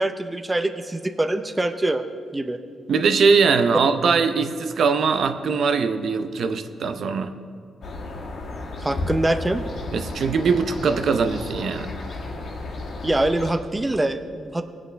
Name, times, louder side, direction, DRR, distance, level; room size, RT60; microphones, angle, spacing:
voice 1, 0.0-2.1 2.3-2.6 8.8-9.6 13.0-14.6, right 1 dB, 15° right, 8 dB, 0.6 m, -24 dB
voice 2, 2.9-7.3 9.9-11.9, right 5 dB, 65° right, 8 dB, 0.6 m, -21 dB
sound 1, 7.8-13.5, left 2 dB, 65° left, 1.8 m, -33 dB
20.5 x 8.2 x 3.4 m, 2.2 s
cardioid pair, 105°, 0 cm